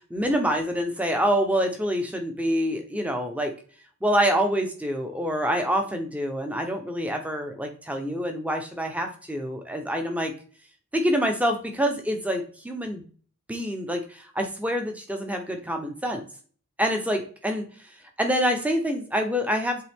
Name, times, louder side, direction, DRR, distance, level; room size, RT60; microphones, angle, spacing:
voice 1, 0.1-3.5 4.0-10.3 10.9-13.0 13.5-16.2 16.8-17.6 18.2-19.8, equal, 5° right, 4 dB, 0.8 m, -26 dB
7.8 x 3.7 x 3.6 m, 0.42 s
head